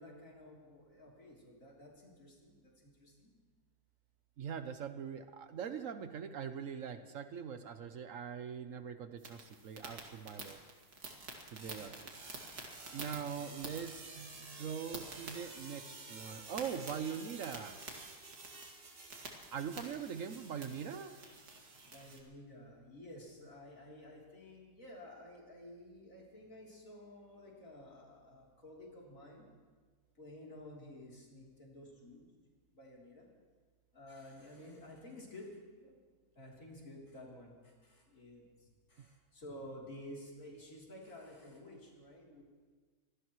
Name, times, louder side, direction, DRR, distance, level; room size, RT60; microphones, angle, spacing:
voice 1, 0.0-3.3 18.2-18.3 21.5-29.5 30.2-32.3 32.7-33.3 33.9-35.5 35.8-36.0 36.4-42.4, left 1 dB, 60° left, -3 dB, 3.8 m, -52 dB
voice 2, 4.4-10.6 11.5-12.2 12.9-17.8 19.5-21.2 39.0-39.1, right 7 dB, 65° right, 9 dB, 1.1 m, -42 dB
sound 1, 9.2-22.2, right 3 dB, 90° right, 2.6 m, -49 dB
25.0 x 18.0 x 3.1 m, 1.5 s
omnidirectional pair, 1.6 m